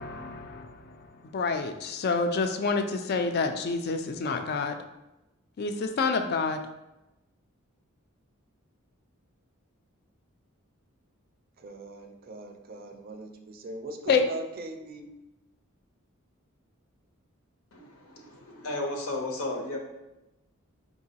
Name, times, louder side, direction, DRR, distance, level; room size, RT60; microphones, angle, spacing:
voice 1, 0.0-4.8 5.6-6.6 14.1-14.2, left 4 dB, 50° left, 7 dB, 0.3 m, -28 dB
voice 2, 11.6-15.1, right 2 dB, 45° right, 5 dB, 0.4 m, -40 dB
voice 3, 17.7-19.8, left 2 dB, 90° left, 1 dB, 0.8 m, -34 dB
4.6 x 2.9 x 2.8 m, 0.97 s
head